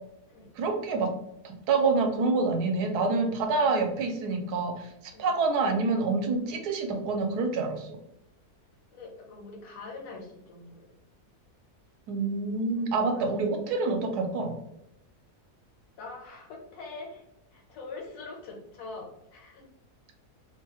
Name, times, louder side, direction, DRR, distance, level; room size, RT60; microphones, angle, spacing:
voice 1, 0.6-1.1 1.4-4.9 5.2-8.0 12.1-14.6, right 3 dB, 85° right, 4 dB, 1.2 m, -27 dB
voice 2, 8.9-10.9 12.8-13.4 16.0-17.2 17.5-19.7, left 3 dB, 75° left, 0 dB, 1.3 m, -44 dB
3.0 x 2.3 x 2.9 m, 0.78 s
omnidirectional pair, 1.7 m